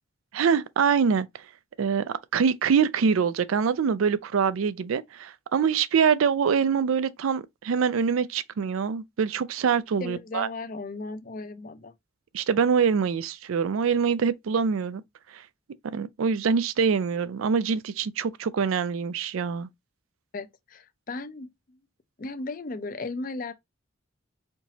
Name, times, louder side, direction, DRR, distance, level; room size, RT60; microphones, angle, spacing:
voice 1, 0.3-1.3 1.8-10.5 12.3-15.0 15.3-15.4 15.9-19.7, right 6 dB, 90° right, 0.4 m, -24 dB
voice 2, 10.0-11.9 20.3-21.8 22.2-23.5, left 3 dB, 40° left, 0.5 m, -36 dB
4.4 x 2.9 x 2.8 m
head